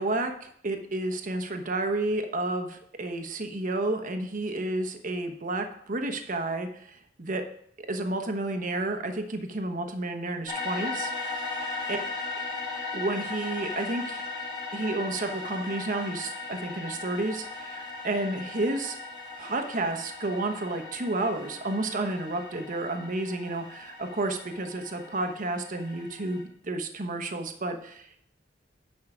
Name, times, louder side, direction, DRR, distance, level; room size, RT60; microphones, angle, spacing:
voice 1, 0.0-7.4 7.8-11.1 11.9-12.0 12.9-14.2 14.7-19.0 19.4-28.2, right 2 dB, 45° right, 5 dB, 1.0 m, -31 dB
sound 1, 10.5-26.4, left 3 dB, 25° left, 2.9 m, -37 dB
9.8 x 5.6 x 4.9 m, 0.65 s
head